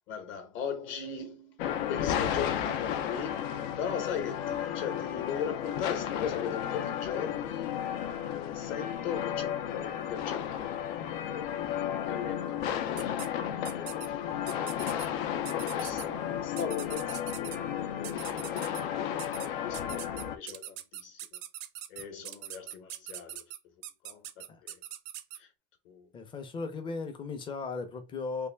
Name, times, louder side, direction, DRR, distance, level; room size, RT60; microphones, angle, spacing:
voice 1, 0.1-14.9 15.3-21.4 21.9-23.4 24.0-24.8 25.4-25.5 25.8-26.1, left 7 dB, 40° left, 0.9 m, -39 dB
sound 1, 1.6-20.4, left 10 dB, 85° left, 0.6 m, -33 dB
sound 2, 13.0-13.3 13.7-14.1 14.5-15.1 15.5-16.1 16.6-17.6 18.0-18.8 19.2-19.5 19.7-25.4, right 12 dB, 50° right, 0.4 m, -42 dB
voice 2, 26.1-28.5, left 4 dB, 15° left, 0.5 m, -36 dB
3.3 x 2.5 x 3.2 m
cardioid pair, 160°, 29 cm